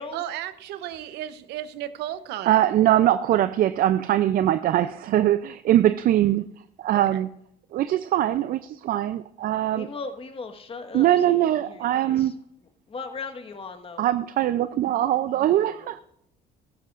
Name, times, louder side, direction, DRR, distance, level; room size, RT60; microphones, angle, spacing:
voice 1, 0.1-2.6 7.1-7.3, right 12 dB, 85° right, 0.8 m, -34 dB
voice 2, 2.5-6.4 6.8-7.3 7.7-9.9 10.9-12.4 14.0-16.0, right 12 dB, 60° right, 0.5 m, -22 dB
voice 3, 9.7-12.3 12.9-14.0 15.3-15.9, left 4 dB, 35° left, 1.4 m, -38 dB
15.5 x 13.0 x 2.5 m
cardioid pair, 110°, 17 cm